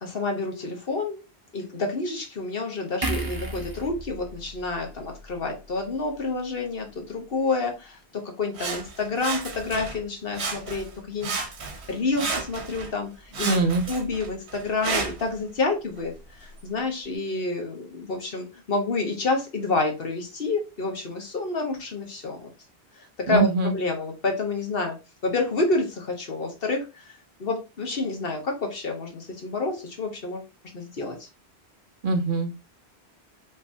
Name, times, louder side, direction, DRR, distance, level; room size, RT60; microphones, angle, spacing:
voice 1, 0.0-1.2 1.5-11.3 11.9-13.6 13.9-22.5 23.0-25.0 25.2-27.1 27.4-30.4 30.7-31.3, left 3 dB, 60° left, 1.4 m, -29 dB
sound 1, 3.0-6.4 6.7-6.9, right 2 dB, 25° right, 0.9 m, -35 dB
Sawing, 8.5-10.0 10.3-10.9 11.2-12.9 13.3-15.3 16.0-16.1, right 4 dB, 85° right, 1.2 m, -32 dB
voice 2, 13.4-13.9 23.3-23.7 32.0-32.7, right 3 dB, 60° right, 0.8 m, -23 dB
5.5 x 3.2 x 2.7 m
omnidirectional pair, 1.1 m